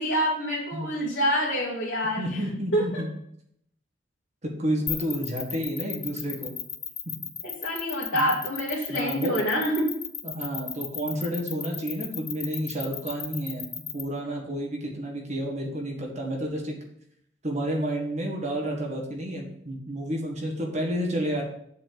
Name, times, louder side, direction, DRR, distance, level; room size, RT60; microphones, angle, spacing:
voice 1, 0.0-2.4 2.7-3.1 7.4-9.9, equal, 70° left, -7 dB, 2.2 m, -26 dB
voice 2, 2.2-3.1 4.4-6.5 8.1-8.3 8.9-9.4 10.2-13.6 13.9-16.8 17.4-21.4, right 1 dB, 35° right, -1 dB, 1.8 m, -30 dB
sound 1, 4.9-14.0, left 7 dB, 15° left, 0.7 m, -34 dB
7.6 x 4.3 x 6.9 m, 0.71 s
head